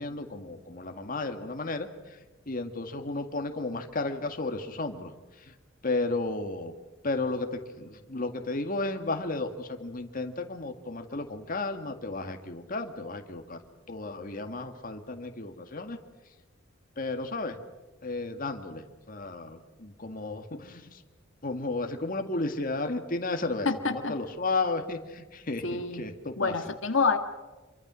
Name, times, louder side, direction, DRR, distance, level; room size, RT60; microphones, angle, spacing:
voice 1, 0.0-5.1 5.4-5.5 5.8-6.7 7.0-13.6 13.9-16.0 17.0-17.6 18.0-21.0 21.4-26.5, left 2 dB, 45° left, 6 dB, 2.0 m, -33 dB
voice 2, 23.6-24.1 25.6-26.0 26.4-27.2, left 4 dB, 75° left, 6 dB, 1.7 m, -27 dB
27.0 x 24.0 x 6.3 m, 1.2 s
head